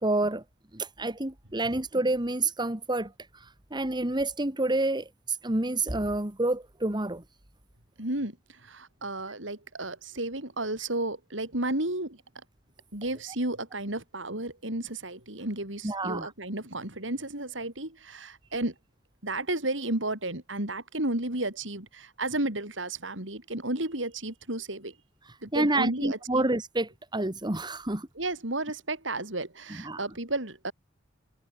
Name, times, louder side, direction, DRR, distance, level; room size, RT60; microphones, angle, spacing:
voice 1, 0.0-0.4 0.7-7.2 15.8-16.3 25.5-28.1 29.8-30.0, right 2 dB, 25° right, 2.2 m, -28 dB
voice 2, 8.0-12.2 12.9-18.7 19.2-24.9 25.4-26.5 28.2-30.7, right 2 dB, 75° right, 6.9 m, -33 dB
head